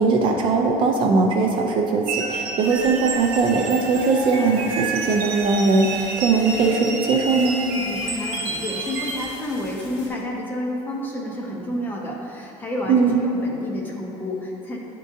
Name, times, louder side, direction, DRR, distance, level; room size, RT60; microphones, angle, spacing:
voice 1, 0.0-7.6 12.9-13.2, right 4 dB, 40° right, 2 dB, 0.5 m, -20 dB
sound 1, 2.1-9.3, right 3 dB, 80° right, 0.9 m, -30 dB
sound 2, 2.6-10.1, left 1 dB, 80° left, 1.5 m, -44 dB
voice 2, 7.6-14.8, left 1 dB, 15° left, -2 dB, 0.6 m, -30 dB
9.5 x 3.7 x 2.7 m, 2.9 s
cardioid pair, 170°, 12 cm